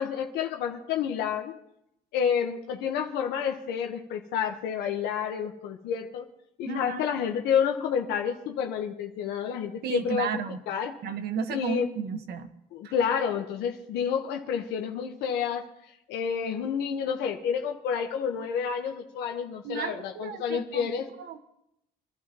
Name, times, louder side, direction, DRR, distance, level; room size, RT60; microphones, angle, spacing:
voice 1, 0.0-1.6 2.1-6.3 6.6-11.0 11.5-11.9 12.7-15.7 16.1-21.1, left 7 dB, 85° left, 3 dB, 1.2 m, -29 dB
voice 2, 6.7-7.0 9.8-10.6 11.0-12.5 12.8-12.9 19.6-20.9 21.2-21.4, right 5 dB, 70° right, 8 dB, 1.4 m, -33 dB
25.0 x 12.0 x 3.0 m, 0.78 s
cardioid pair, 110°, 17 cm